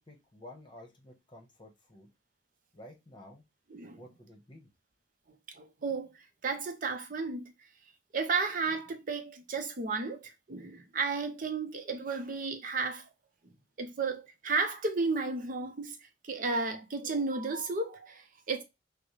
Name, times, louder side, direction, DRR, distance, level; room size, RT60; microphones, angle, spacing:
voice 1, 0.1-2.1 2.7-3.4 4.0-4.7, left 1 dB, 25° left, 1.2 m, -52 dB
voice 2, 3.7-4.0 5.5-7.5 8.1-13.1 13.8-18.6, right 4 dB, 50° right, 0.6 m, -33 dB
6.0 x 2.2 x 3.2 m
head